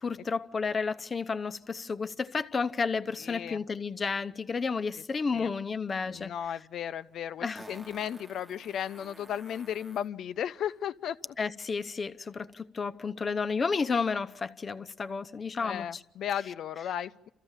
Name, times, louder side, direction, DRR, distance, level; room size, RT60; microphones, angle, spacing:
voice 1, 0.0-6.3 7.4-7.6 11.4-15.9, left 5 dB, 35° left, 0.8 m, -31 dB
voice 2, 3.2-3.6 4.9-5.0 5.3-5.5 6.0-11.4 15.6-17.3, left 9 dB, 70° left, 0.7 m, -35 dB
Fart, 6.4-6.5 7.5-10.1 12.5-12.6, right 1 dB, 15° right, 1.2 m, -51 dB
29.0 x 14.5 x 7.3 m
cardioid pair, 90°, 0 cm